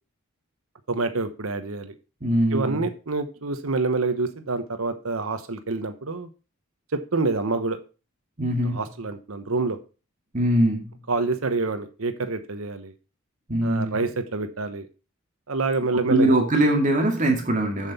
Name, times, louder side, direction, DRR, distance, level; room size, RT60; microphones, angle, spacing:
voice 1, 0.9-1.9 2.5-6.3 6.9-7.8 8.6-9.8 11.1-12.9 13.6-14.9 15.5-16.3, right 3 dB, 75° right, 9 dB, 1.0 m, -27 dB
voice 2, 2.2-2.9 8.4-8.8 10.3-10.9 13.5-14.0 16.1-17.9, right 1 dB, 35° right, 2 dB, 2.1 m, -22 dB
7.5 x 7.4 x 4.1 m, 0.32 s
head